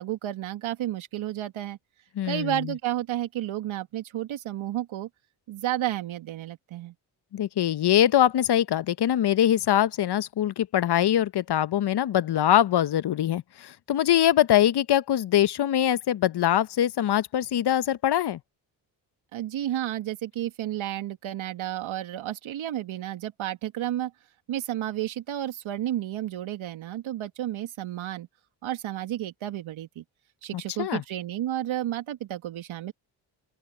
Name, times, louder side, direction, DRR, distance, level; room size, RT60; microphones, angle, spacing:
voice 1, 0.0-1.8 2.2-5.1 5.5-6.9 19.3-24.1 24.5-28.3 28.6-30.0 30.4-32.9, right 12 dB, 75° right, 2.4 m, -31 dB
voice 2, 2.2-2.7 7.3-18.4 30.5-31.0, left 11 dB, 55° left, 1.0 m, -23 dB
open air
supercardioid pair, 55°, 48 cm